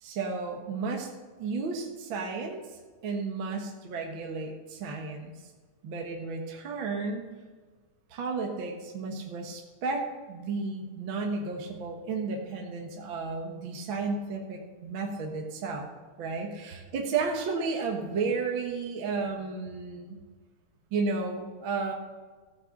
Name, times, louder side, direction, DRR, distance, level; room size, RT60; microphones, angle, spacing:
voice 1, 0.0-1.1 1.4-2.7 3.0-5.3 5.8-7.3 8.1-15.9 16.2-20.2 20.9-21.9, right 4 dB, 50° right, 1 dB, 1.7 m, -33 dB
15.5 x 6.0 x 6.5 m, 1.4 s
omnidirectional pair, 3.7 m